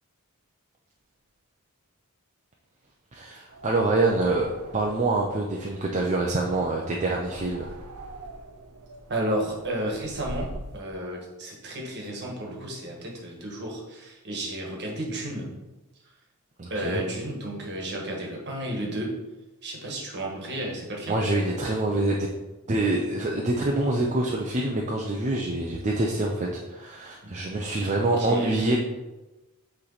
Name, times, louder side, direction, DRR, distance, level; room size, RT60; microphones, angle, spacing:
voice 1, 3.1-7.7 16.6-17.0 21.1-22.3 22.7-28.8, right 2 dB, 35° right, -1 dB, 0.6 m, -26 dB
sound 1, 3.5-10.8, right 1 dB, 80° right, 0.6 m, -43 dB
voice 2, 9.1-15.5 16.7-19.2 19.6-21.2 28.0-28.7, right 1 dB, 50° right, -1 dB, 1.5 m, -32 dB
8.6 x 3.3 x 4.0 m, 1.1 s
head